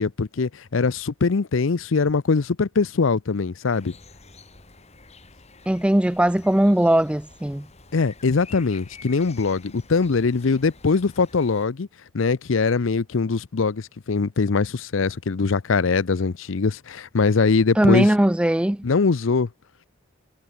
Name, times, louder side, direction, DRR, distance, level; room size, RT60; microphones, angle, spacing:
voice 1, 0.0-3.9 7.9-11.9 12.1-18.1 18.8-19.5, left 4 dB, 70° left, 0.6 m, -22 dB
sound 1, 3.7-11.7, left 4 dB, 35° left, 3.6 m, -48 dB
voice 2, 5.7-7.7 17.8-18.9, right 1 dB, 5° right, 0.4 m, -19 dB
head